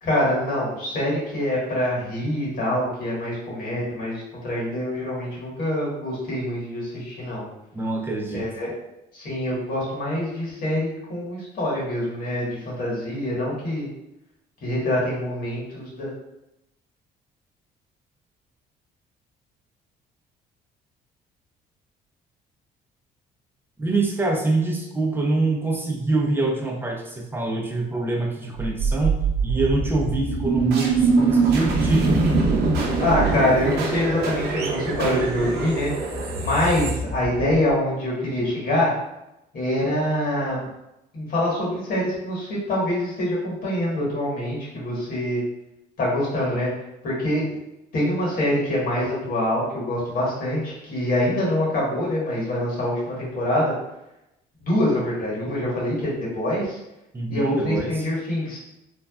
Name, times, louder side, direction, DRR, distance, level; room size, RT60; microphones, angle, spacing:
voice 1, 0.0-7.4 8.3-8.7 9.1-13.9 14.6-16.1 33.0-35.9 36.4-38.9 39.5-40.7 41.1-45.4 46.0-46.7 47.0-47.4 47.9-53.7 54.6-56.8 57.3-58.6, left 1 dB, 60° left, -6 dB, 1.5 m, -25 dB
voice 2, 7.7-8.4 23.8-32.1 57.1-58.1, right 2 dB, 15° right, 0 dB, 0.5 m, -25 dB
sound 1, 28.6-37.7, right 4 dB, 70° right, 0.6 m, -23 dB
3.2 x 2.2 x 2.3 m, 0.89 s
cardioid pair, 110°, 17 cm